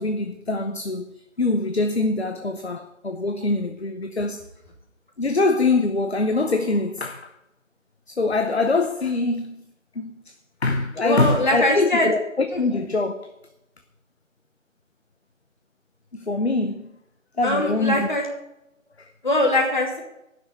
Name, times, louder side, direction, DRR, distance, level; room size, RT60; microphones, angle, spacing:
voice 1, 0.0-4.4 5.2-7.3 8.1-9.7 9.9-10.3 10.6-13.3 16.1-16.9 17.4-18.1 19.0-19.1, left 3 dB, 50° left, 0.9 m, -24 dB
voice 2, 11.0-12.1 12.5-12.6 17.4-18.3 19.2-20.0, left 1 dB, 35° left, 2.6 m, -21 dB
10.5 x 6.3 x 8.9 m
figure-of-eight pair, 165°, 40 cm